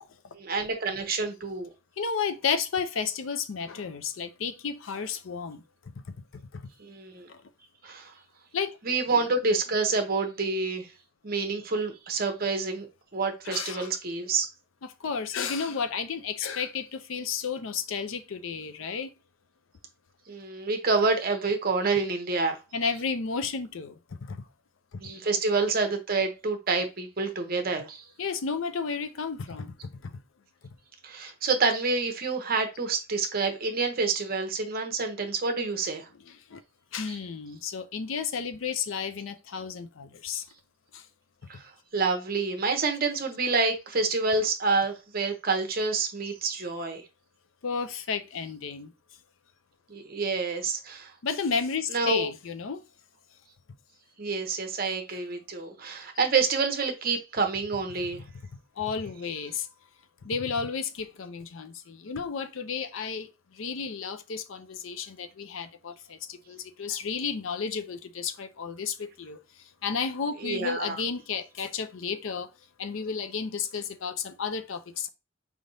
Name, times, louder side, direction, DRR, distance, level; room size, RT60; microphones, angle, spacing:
voice 1, 0.3-1.7 6.8-7.3 7.8-8.1 8.8-10.9 11.2-12.9 13.1-14.5 20.3-22.6 25.0-28.0 31.0-36.1 37.1-37.2 41.5-47.0 49.9-51.1 51.9-52.3 54.2-58.2 70.4-71.0, right 4 dB, 50° right, 0.8 m, -28 dB
voice 2, 2.0-5.6 6.1-6.6 7.3-7.4 8.5-8.8 9.1-9.2 13.5-13.9 14.8-19.1 22.7-24.4 24.9-25.0 28.2-30.1 36.2-36.6 36.9-40.5 40.9-41.1 47.6-48.9 51.2-52.8 58.8-59.7 60.2-69.4 69.8-72.5 72.8-75.1, left 6 dB, 85° left, 0.5 m, -32 dB
4.8 x 3.3 x 2.7 m
head